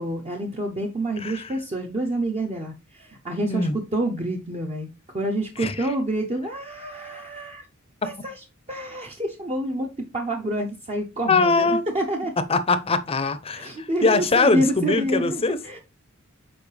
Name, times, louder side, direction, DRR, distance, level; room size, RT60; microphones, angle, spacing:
voice 1, 0.0-4.9 5.1-7.6 8.0-9.9 10.1-12.3 13.5-15.8, right 1 dB, 30° right, 0.7 m, -28 dB
voice 2, 1.2-1.5 3.5-3.7 5.6-5.9 11.3-11.8 12.5-15.6, left 3 dB, 30° left, 0.6 m, -22 dB
7.0 x 4.6 x 3.3 m
head